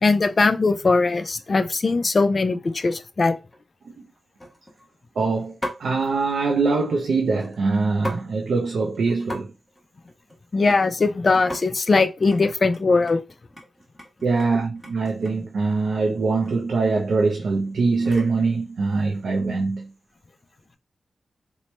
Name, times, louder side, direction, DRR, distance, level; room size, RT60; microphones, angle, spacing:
voice 1, 0.0-3.4 10.5-13.2, left 3 dB, 40° left, 0.4 m, -20 dB
sound 1, 1.4-1.7 2.2-2.5 2.8-2.9 3.2-3.6 4.4-4.9 5.6-5.9 7.3-8.3 8.6-8.7 8.9-9.4 9.7-11.1 11.3-11.6 12.0-12.4 12.7-15.5 16.4-16.6 16.9-18.4 19.1-19.4, left 1 dB, 10° left, 1.0 m, -38 dB
voice 2, 5.2-9.5 14.2-19.9, right 4 dB, 80° right, 0.4 m, -23 dB
3.0 x 2.1 x 4.1 m
wide cardioid pair, 140°, 0 cm